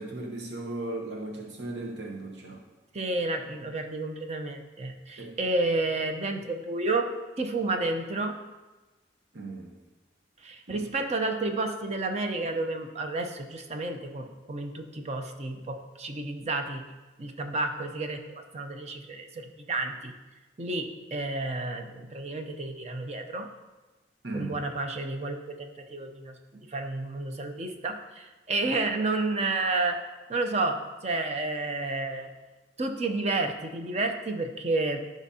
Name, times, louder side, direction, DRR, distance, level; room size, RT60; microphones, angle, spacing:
voice 1, 0.0-2.6 5.2-5.4 9.3-9.7 10.7-10.8 24.2-24.6, right 2 dB, 70° right, 0 dB, 1.0 m, -36 dB
voice 2, 2.9-7.0 7.4-8.4 10.4-16.8 17.2-20.1 20.6-23.5 24.3-30.0 30.3-32.3 32.8-35.0, right 2 dB, 35° right, 5 dB, 0.6 m, -31 dB
12.0 x 5.1 x 2.8 m, 1.2 s
head